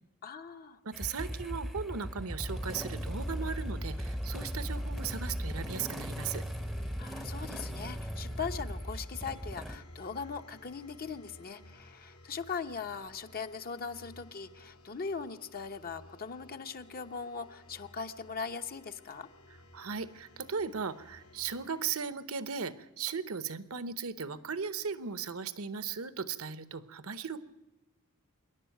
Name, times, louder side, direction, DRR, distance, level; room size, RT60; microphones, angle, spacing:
voice 1, 0.2-0.8 7.0-19.3, left 5 dB, 45° left, 8 dB, 1.0 m, -40 dB
voice 2, 0.8-6.4 19.7-27.4, right 6 dB, 70° right, 13 dB, 0.9 m, -37 dB
Motorcycle / Engine starting, 0.9-9.8, equal, ahead, 0.8 m, -37 dB
sound 1, 2.0-21.9, left 1 dB, 75° left, 2.3 m, -56 dB
26.0 x 11.0 x 9.1 m, 0.99 s
head